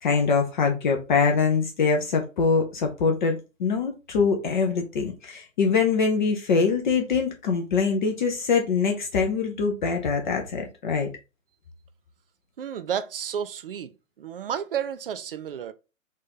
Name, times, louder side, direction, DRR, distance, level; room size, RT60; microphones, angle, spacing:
voice 1, 0.0-11.1, left 5 dB, 35° left, 0.7 m, -24 dB
voice 2, 12.6-13.9 14.2-15.7, right 8 dB, 45° right, 0.5 m, -31 dB
4.2 x 2.6 x 3.7 m
figure-of-eight pair, 125°, 40 cm